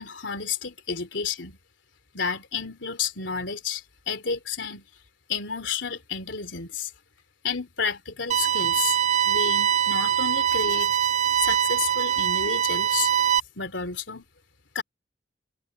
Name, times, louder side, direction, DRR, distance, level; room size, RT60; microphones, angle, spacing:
voice 1, 0.0-1.6 2.1-4.8 5.3-6.9 7.4-9.0 9.2-10.9 11.4-13.1 13.5-14.2 14.7-14.8, left 6 dB, 80° left, 3.1 m, -31 dB
sound 1, 8.3-13.4, right 9 dB, 40° right, 0.4 m, -23 dB
head